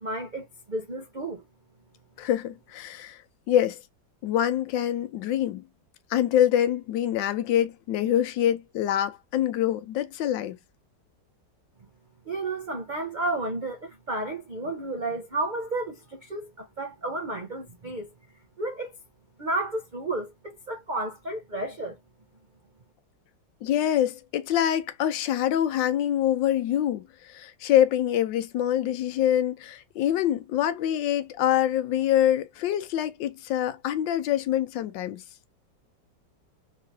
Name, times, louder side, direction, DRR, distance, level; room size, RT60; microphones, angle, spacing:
voice 1, 0.0-1.4 12.3-18.1 18.6-19.0 19.4-22.0, right 2 dB, 65° right, 0.4 m, -32 dB
voice 2, 2.2-3.2 3.5-3.8 4.2-5.6 6.1-10.6 23.6-35.2, left 11 dB, 80° left, 1.3 m, -25 dB
3.7 x 3.0 x 2.6 m
omnidirectional pair, 2.0 m